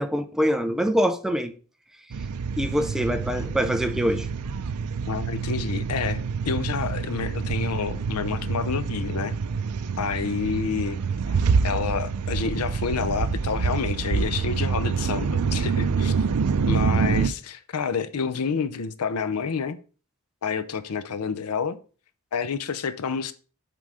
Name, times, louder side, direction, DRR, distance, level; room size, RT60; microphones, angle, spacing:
voice 1, 0.0-1.5 2.6-4.3, equal, ahead, 0.5 m, -24 dB
sound 1, 2.1-17.3, right 5 dB, 90° right, 0.5 m, -26 dB
voice 2, 5.1-9.3 10.0-11.0 11.3-11.4 11.6-16.1 16.7-19.8 20.4-21.8 22.3-23.3, left 5 dB, 80° left, 0.6 m, -29 dB
7.5 x 3.8 x 4.8 m
head